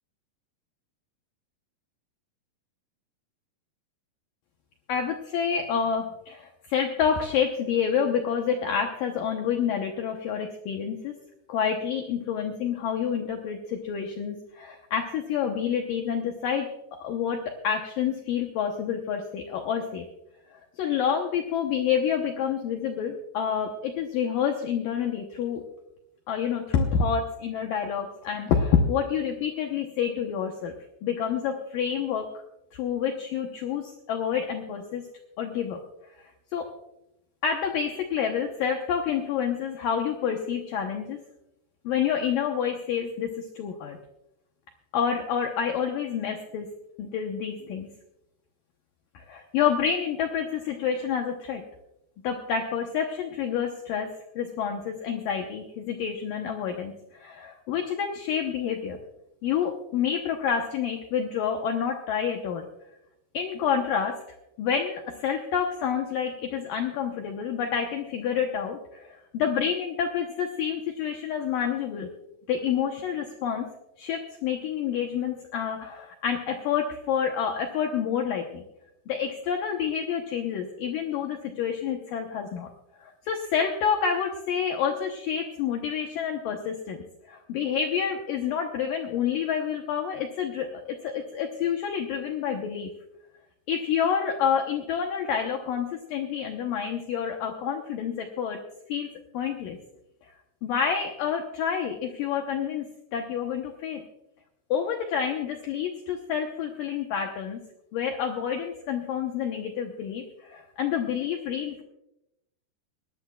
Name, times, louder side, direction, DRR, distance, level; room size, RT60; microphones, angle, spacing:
voice 1, 4.9-11.1 11.5-16.7 17.0-20.1 20.8-25.6 26.3-30.7 31.0-32.3 32.7-35.0 35.4-35.8 36.5-36.7 37.4-41.2 41.8-44.0 44.9-46.7 47.0-47.9 49.1-51.6 52.2-54.1 54.4-59.0 59.4-62.7 63.3-64.2 64.6-72.1 72.5-73.7 74.0-78.6 79.1-82.7 83.0-92.9 93.7-98.6 98.9-99.8 100.6-102.9 103.1-104.0 104.7-107.6 107.9-111.8, left 7 dB, 70° left, 3 dB, 2.3 m, -28 dB
20.5 x 16.5 x 2.3 m, 0.87 s
omnidirectional pair, 4.7 m